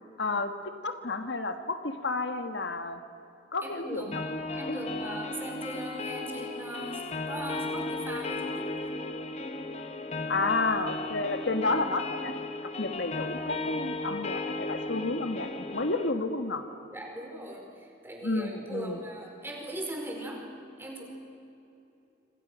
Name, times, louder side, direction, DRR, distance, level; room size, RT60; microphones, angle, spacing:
voice 1, 0.2-0.5 0.8-3.0 3.5-4.4 4.7-4.8 10.3-12.3 12.8-16.6 18.2-19.0, left 3 dB, 70° left, 7 dB, 1.5 m, -31 dB
voice 2, 3.6-7.0 7.3-8.8 16.9-20.4 20.8-21.0, right 1 dB, 10° right, 0 dB, 4.8 m, -39 dB
sound 1, 4.1-16.1, left 2 dB, 35° left, 1.4 m, -35 dB
27.5 x 26.0 x 6.3 m, 2.8 s
head